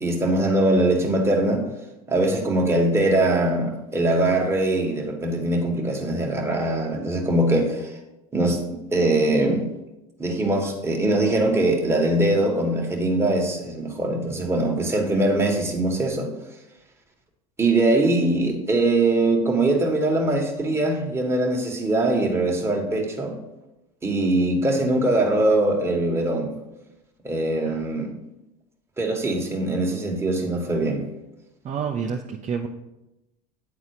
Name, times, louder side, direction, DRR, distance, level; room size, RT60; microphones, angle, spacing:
voice 1, 0.0-1.6 2.1-8.0 8.3-9.7 10.2-16.3 17.6-23.4 24.0-26.5 27.2-28.1 29.0-31.0, right 2 dB, 10° right, 0 dB, 1.7 m, -22 dB
voice 2, 31.6-32.7, right 6 dB, 35° right, 2 dB, 0.7 m, -29 dB
9.3 x 4.0 x 4.8 m, 0.93 s
supercardioid pair, 95°, 20 cm